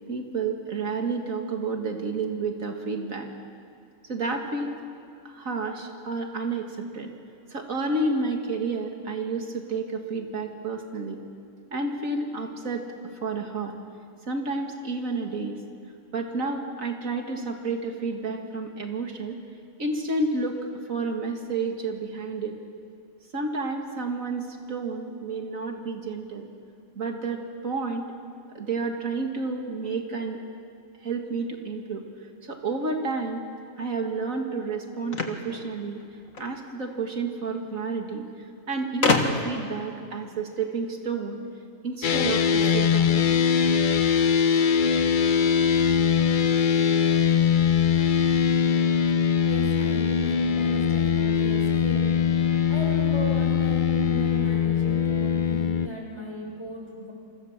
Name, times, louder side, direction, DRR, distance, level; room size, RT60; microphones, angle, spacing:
voice 1, 0.1-3.3 4.0-4.8 5.2-7.1 7.5-11.2 11.7-12.8 13.2-13.7 14.3-15.6 16.1-19.4 19.8-20.6 20.9-22.6 23.3-26.5 27.0-28.1 28.5-30.4 31.0-32.0 32.4-33.4 33.8-36.0 36.4-38.3 38.7-41.4 41.8-43.1, right 3 dB, 80° right, 3 dB, 2.5 m, -30 dB
sound 1, 35.1-36.5 37.6-37.7 37.9-38.0 39.0-39.7, left 3 dB, 90° left, 2.3 m, -26 dB
sound 2, 42.0-55.9, left 7 dB, 45° left, 0.8 m, -22 dB
voice 2, 49.4-52.2 52.7-57.1, equal, 20° left, -1 dB, 6.4 m, -36 dB
28.5 x 25.0 x 7.5 m, 2.4 s
omnidirectional pair, 1.4 m